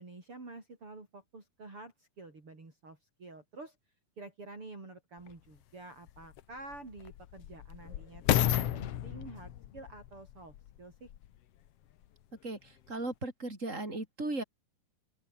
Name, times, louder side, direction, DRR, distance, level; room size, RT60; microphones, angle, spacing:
voice 1, 0.0-3.8 4.2-11.1, right 2 dB, 40° right, 6.5 m, -49 dB
sound 1, 5.3-5.4 6.1-11.4 12.0-12.1, left 12 dB, 65° left, 1.6 m, -33 dB
voice 2, 12.4-14.4, right 2 dB, 20° right, 7.7 m, -37 dB
open air
omnidirectional pair, 4.0 m